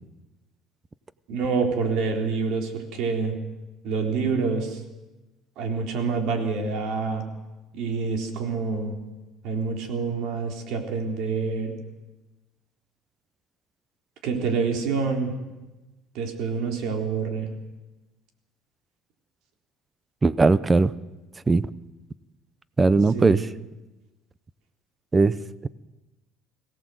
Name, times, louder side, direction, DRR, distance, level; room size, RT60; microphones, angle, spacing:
voice 1, 1.3-3.4 3.8-4.8 5.6-7.3 7.7-9.0 9.4-11.7 14.2-15.3 16.1-17.5 23.1-23.4, right 4 dB, 70° right, 3 dB, 3.7 m, -27 dB
voice 2, 20.2-20.9 21.5-21.7 22.8-23.4 25.1-25.4, right 3 dB, 20° right, 17 dB, 0.7 m, -19 dB
22.5 x 17.5 x 7.8 m, 1.1 s
cardioid pair, 135°, 0 cm